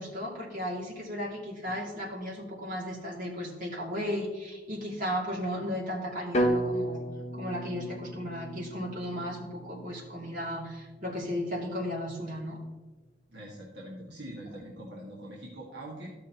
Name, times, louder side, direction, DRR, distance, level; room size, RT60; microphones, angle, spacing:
voice 1, 0.0-7.0 7.3-12.6, equal, 50° right, -4 dB, 2.5 m, -35 dB
sound 1, 6.3-10.4, right 1 dB, 40° left, 0.9 m, -32 dB
voice 2, 13.3-16.1, right 1 dB, 70° right, -5 dB, 1.9 m, -43 dB
14.0 x 6.2 x 3.0 m, 1.2 s
head